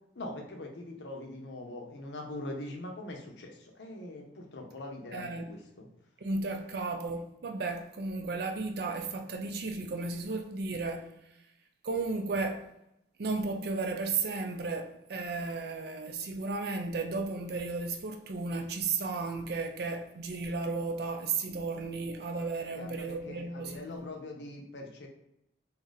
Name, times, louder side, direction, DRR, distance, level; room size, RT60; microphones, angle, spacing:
voice 1, 0.2-5.8 22.7-25.1, left 1 dB, 70° left, 0.7 m, -42 dB
voice 2, 5.1-5.6 6.2-11.1 11.8-12.7 13.2-24.1, right 3 dB, 55° right, 0.4 m, -34 dB
2.7 x 2.4 x 3.9 m
head